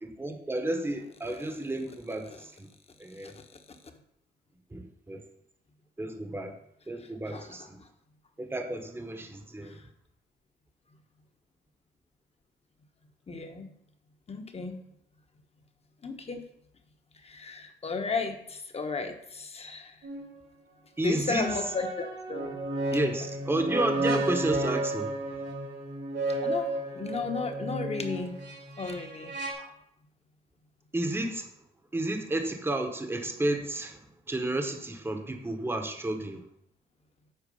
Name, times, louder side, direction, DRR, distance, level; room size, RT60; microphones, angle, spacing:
voice 1, 0.0-2.7 3.0-3.3 4.7-5.2 6.0-6.6 6.9-7.8 8.4-9.7 21.0-21.5 22.9-25.2 30.9-31.5 31.9-34.0 34.3-36.4, right 1 dB, 10° right, 5 dB, 1.0 m, -31 dB
voice 2, 13.3-13.7 14.3-14.8 16.0-16.4 17.2-19.9 21.0-22.6 26.4-28.4 28.8-29.7, left 4 dB, 30° left, 6 dB, 1.1 m, -34 dB
sound 1, 20.0-20.2 21.3-29.5, right 1 dB, 75° right, 2.2 m, -32 dB
8.2 x 4.6 x 5.4 m, 0.73 s
cardioid pair, 90°, 20 cm